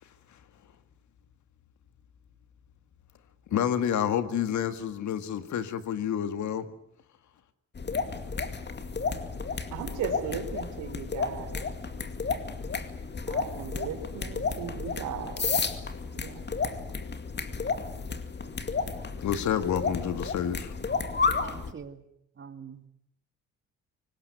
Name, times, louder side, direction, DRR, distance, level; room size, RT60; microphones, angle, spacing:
voice 1, 3.5-6.7 19.2-20.7, left 9 dB, 70° left, 11 dB, 2.1 m, -29 dB
sound 1, 7.8-21.7, left 5 dB, 35° left, 2.3 m, -32 dB
voice 2, 9.7-11.6 13.3-15.5 16.1-16.4, right 8 dB, 85° right, 6 dB, 3.5 m, -37 dB
voice 3, 21.4-22.0 22.4-22.9, right 6 dB, 40° right, 9 dB, 2.6 m, -44 dB
24.5 x 19.0 x 9.5 m, 0.77 s
cardioid pair, 90°, 30 cm